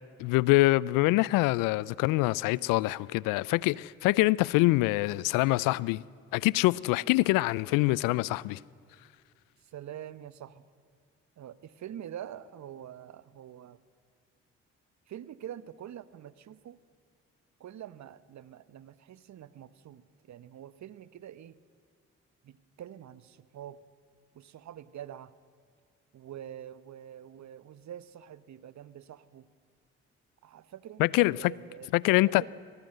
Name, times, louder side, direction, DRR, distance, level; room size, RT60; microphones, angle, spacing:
voice 1, 0.2-6.0 6.3-8.6 31.0-31.4 31.9-32.5, left 20 dB, 75° left, 0.5 m, -25 dB
voice 2, 9.6-10.6 11.4-13.8 15.1-16.8 17.6-21.6 22.4-23.8 24.3-25.3 26.1-29.5 30.4-31.9 32.2-32.5, right 10 dB, 60° right, 1.0 m, -45 dB
23.5 x 18.5 x 7.8 m
hypercardioid pair, 45°, 32 cm